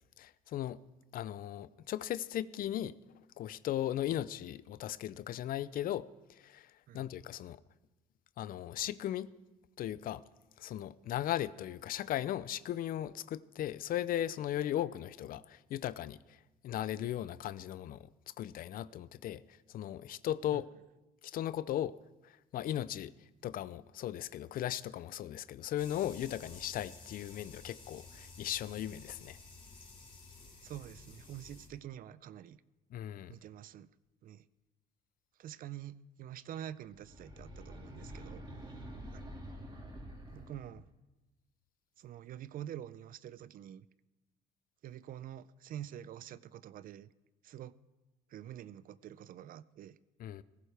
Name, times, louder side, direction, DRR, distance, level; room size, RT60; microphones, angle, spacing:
voice 1, 0.2-0.8 1.1-3.0 3.4-7.6 8.4-9.3 9.8-10.2 10.6-16.4 16.6-18.1 18.4-19.4 19.7-20.7 21.2-22.0 22.2-23.1 23.4-29.4 32.9-33.4 50.2-50.4, left 12 dB, 60° left, 0.5 m, -37 dB
sound 1, 25.8-31.7, left 3 dB, 30° left, 2.9 m, -53 dB
voice 2, 30.6-32.6 33.3-33.9 34.2-34.5 35.4-38.5 39.1-39.3 40.3-40.9 42.0-43.9 44.8-47.1 47.4-47.8 48.3-50.0, right 11 dB, 55° right, 0.5 m, -47 dB
sound 2, 36.9-40.8, equal, 25° right, 3.4 m, -47 dB
18.5 x 15.5 x 3.4 m
cardioid pair, 110°, 17 cm